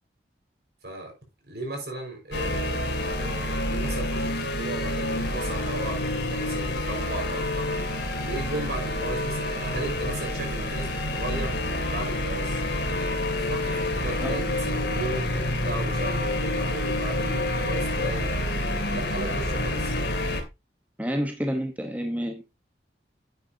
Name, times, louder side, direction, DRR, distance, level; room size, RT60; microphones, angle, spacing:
voice 1, 0.8-1.1 1.5-2.8 3.2-7.7 8.2-11.6 11.9-12.6 13.5-18.4 18.9-20.0, right 2 dB, 65° right, 5.1 m, -35 dB
sound 1, 2.3-20.4, left 1 dB, 75° left, 2.8 m, -28 dB
voice 2, 21.0-22.4, equal, 10° right, 1.1 m, -29 dB
10.5 x 8.5 x 2.8 m
head